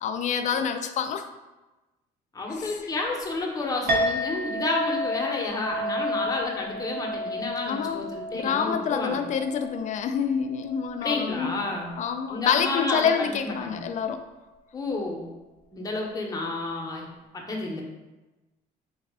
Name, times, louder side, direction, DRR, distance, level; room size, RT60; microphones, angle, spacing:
voice 1, 0.0-1.2 2.5-2.7 7.7-11.7 12.0-14.2, left 7 dB, 45° left, 8 dB, 0.4 m, -27 dB
voice 2, 2.3-9.2 11.0-11.9 12.3-13.8 14.7-15.3 15.7-17.1 17.3-17.8, left 2 dB, 20° left, 0 dB, 0.7 m, -30 dB
Chink clink, 3.9-12.6, left 1 dB, 65° right, 1.0 m, -32 dB
3.9 x 2.3 x 3.6 m, 1.1 s
cardioid pair, 110°, 17 cm